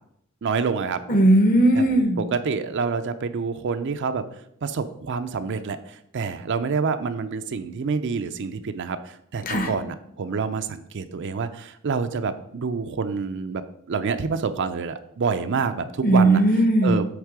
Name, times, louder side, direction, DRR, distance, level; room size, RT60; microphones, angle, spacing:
voice 1, 0.4-1.0 1.7-1.8 2.2-4.2 4.6-13.6 13.9-16.4 16.8-17.1, right 5 dB, 55° right, 10 dB, 0.5 m, -27 dB
voice 2, 1.1-2.3 9.4-9.7 16.0-17.0, right 1 dB, 40° left, 6 dB, 1.0 m, -18 dB
8.2 x 3.6 x 4.8 m, 0.74 s
head